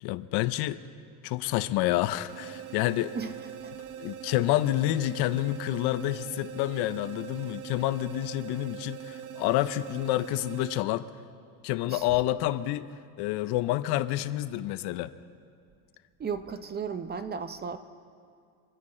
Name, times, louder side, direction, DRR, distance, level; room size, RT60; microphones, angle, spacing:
voice 1, 0.0-0.8 1.2-3.1 4.0-11.1 11.6-12.9 13.2-15.1, left 15 dB, 65° left, 13 dB, 0.7 m, -28 dB
sound 1, 2.3-10.8, right 10 dB, 90° right, 1.0 m, -42 dB
voice 2, 16.2-17.8, right 6 dB, 25° right, 10 dB, 0.7 m, -35 dB
26.5 x 10.0 x 4.3 m, 2.4 s
cardioid pair, 130°, 42 cm